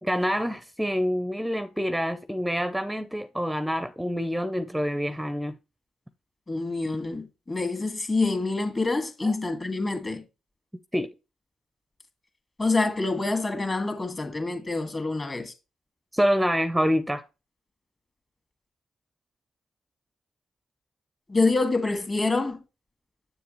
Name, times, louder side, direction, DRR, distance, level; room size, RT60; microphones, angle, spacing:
voice 1, 0.0-5.6 9.2-9.4 10.9-11.1 16.1-17.2, equal, 5° right, 0.6 m, -26 dB
voice 2, 6.5-10.2 12.6-15.5 21.3-22.6, left 3 dB, 30° left, 2.1 m, -26 dB
7.6 x 6.9 x 3.1 m
hypercardioid pair, 50°, 0 cm